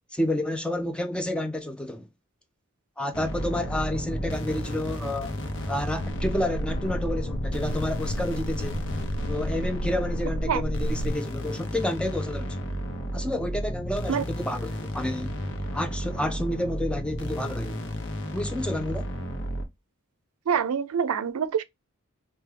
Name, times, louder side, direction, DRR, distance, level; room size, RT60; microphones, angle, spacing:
voice 1, 0.1-2.1 3.0-5.4 5.7-8.8 9.3-12.6 13.1-15.3 15.7-17.8 18.3-19.1, left 1 dB, 5° left, 0.3 m, -30 dB
sound 1, 3.1-19.6, equal, 60° left, 0.7 m, -32 dB
sound 2, 6.0-11.1, equal, 80° left, 0.3 m, -33 dB
voice 2, 20.5-21.6, right 7 dB, 90° right, 0.4 m, -25 dB
4.5 x 2.1 x 3.3 m
head